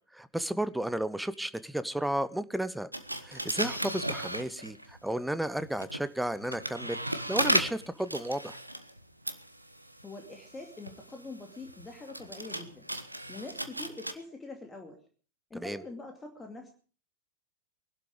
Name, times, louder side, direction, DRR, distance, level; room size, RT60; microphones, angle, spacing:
voice 1, 0.1-2.9 3.2-7.0 7.3-8.6 15.5-15.8, right 1 dB, 5° right, 14 dB, 0.9 m, -33 dB
sound 1, 2.9-5.0 5.6-14.1, right 1 dB, 85° right, 1.2 m, -35 dB
voice 2, 10.0-12.9 13.3-15.0 15.5-16.7, left 3 dB, 15° left, 3 dB, 2.5 m, -44 dB
21.0 x 12.0 x 5.0 m, 0.40 s
figure-of-eight pair, 90°, 0 cm